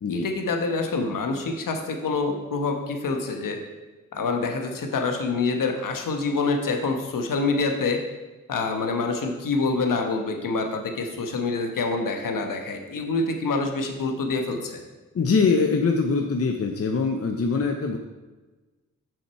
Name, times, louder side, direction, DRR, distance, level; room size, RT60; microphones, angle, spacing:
voice 1, 0.1-3.6 4.1-8.0 8.5-14.8, left 3 dB, 70° left, 4 dB, 1.2 m, -26 dB
voice 2, 15.1-18.0, left 4 dB, 45° left, 4 dB, 0.8 m, -23 dB
7.2 x 6.5 x 4.7 m, 1.2 s
cardioid pair, 55°, 33 cm